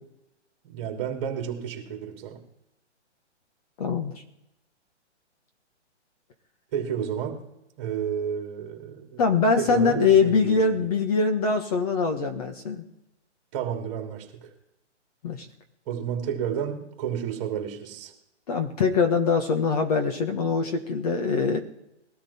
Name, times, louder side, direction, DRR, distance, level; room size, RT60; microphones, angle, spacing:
voice 1, 0.6-2.4 6.7-7.4 7.8-9.2 9.6-10.9 13.5-14.5 15.9-18.1, right 8 dB, 25° right, 2 dB, 3.2 m, -31 dB
voice 2, 3.8-4.1 9.2-12.8 15.2-15.5 18.5-21.6, left 5 dB, 30° left, 6 dB, 1.5 m, -23 dB
20.0 x 13.0 x 4.4 m, 0.89 s
hypercardioid pair, 165°, 36 cm